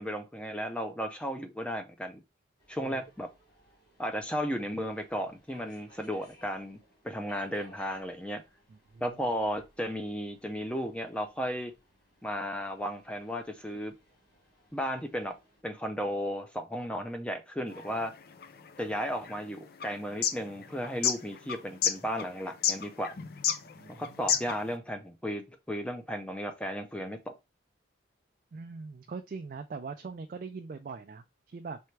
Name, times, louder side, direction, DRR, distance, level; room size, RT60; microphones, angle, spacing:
voice 1, 0.0-2.2 2.7-3.3 4.0-6.8 7.0-8.4 9.0-11.7 12.2-13.9 14.7-15.3 15.6-18.1 18.8-23.2 23.9-27.3, equal, 5° left, 0.6 m, -34 dB
Subway metro underground, 2.6-15.6, equal, 25° left, 3.0 m, -60 dB
voice 2, 8.7-9.2 23.8-24.0 28.5-31.8, right 4 dB, 45° right, 0.3 m, -42 dB
sound 1, 17.7-24.8, left 8 dB, 50° left, 0.5 m, -32 dB
4.4 x 3.4 x 3.2 m
head